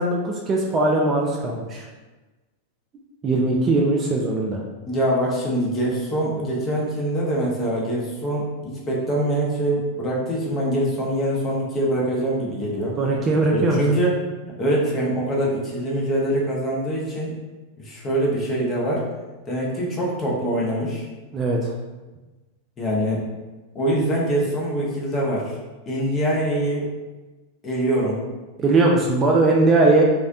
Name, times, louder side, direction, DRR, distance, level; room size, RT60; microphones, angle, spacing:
voice 1, 0.0-1.9 3.2-4.6 13.0-13.8 21.3-21.7 28.6-30.0, right 2 dB, 25° right, -1 dB, 0.3 m, -20 dB
voice 2, 4.8-13.0 13.5-14.2 14.6-17.4 17.8-19.0 19.5-21.1 22.8-23.2 23.7-25.6 25.9-26.9 27.6-28.2, right 1 dB, 25° left, -4 dB, 0.7 m, -24 dB
2.5 x 2.0 x 2.5 m, 1.2 s
figure-of-eight pair, 90°, 0 cm